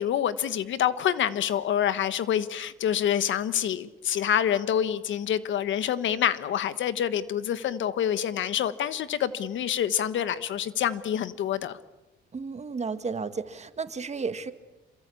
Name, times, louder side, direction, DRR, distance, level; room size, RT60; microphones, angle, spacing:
voice 1, 0.0-11.8, left 10 dB, 70° left, 14 dB, 1.4 m, -27 dB
voice 2, 12.3-14.5, right 4 dB, 35° right, 10 dB, 1.8 m, -33 dB
27.0 x 23.0 x 8.6 m, 1.0 s
cardioid pair, 90°, 20 cm